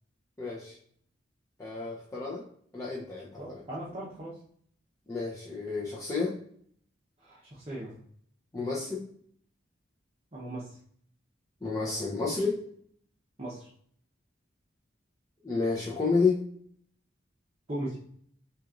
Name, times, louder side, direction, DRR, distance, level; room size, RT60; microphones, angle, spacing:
voice 1, 0.4-0.7 1.6-2.4 2.7-3.6 5.1-6.3 8.5-9.0 11.6-12.6 15.4-16.4, left 4 dB, 15° left, -6 dB, 0.7 m, -30 dB
voice 2, 3.4-4.4 7.2-7.9 10.3-10.7 13.4-13.7 17.7-18.0, right 1 dB, 35° right, -7 dB, 0.9 m, -38 dB
6.0 x 2.5 x 2.5 m, 0.62 s
head